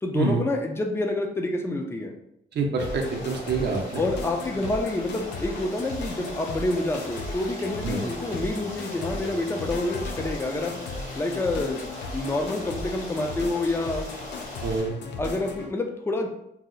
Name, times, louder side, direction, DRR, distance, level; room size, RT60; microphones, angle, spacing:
voice 1, 0.0-2.1 4.0-10.8 11.1-11.9 12.1-14.1 15.2-16.3, left 2 dB, 15° left, 3 dB, 0.4 m, -28 dB
voice 2, 2.6-4.0 7.8-8.0 14.6-14.9, right 4 dB, 65° right, 2 dB, 0.5 m, -26 dB
Feeling Spacey, 2.8-15.7, left 3 dB, 75° left, 0.4 m, -37 dB
Stream, 2.8-14.8, left 1 dB, 45° left, 1.2 m, -40 dB
2.7 x 2.0 x 3.8 m, 0.77 s
cardioid pair, 105°, 18 cm